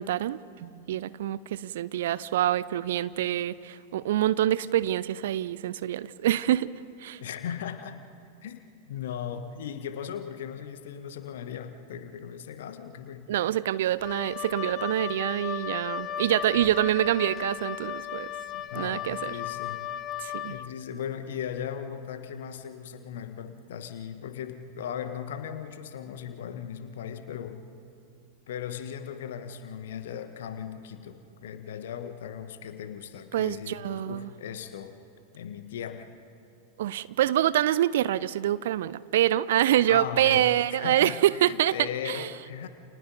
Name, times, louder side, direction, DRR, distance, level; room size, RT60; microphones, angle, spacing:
voice 1, 0.0-6.7 7.0-7.2 13.3-18.3 18.7-19.4 20.2-20.5 33.3-34.3 36.8-41.7 42.1-42.3, right 12 dB, 55° right, 18 dB, 0.5 m, -26 dB
voice 2, 7.2-8.0 8.4-13.3 18.5-19.8 20.5-27.6 28.5-35.0 35.3-36.1 39.9-42.7, left 8 dB, 60° left, 9 dB, 1.5 m, -38 dB
Wind instrument woodwind instrument, 14.0-20.7, left 10 dB, 25° left, 1.0 m, -35 dB
29.5 x 29.5 x 4.0 m, 2.5 s
figure-of-eight pair, 90°, 0 cm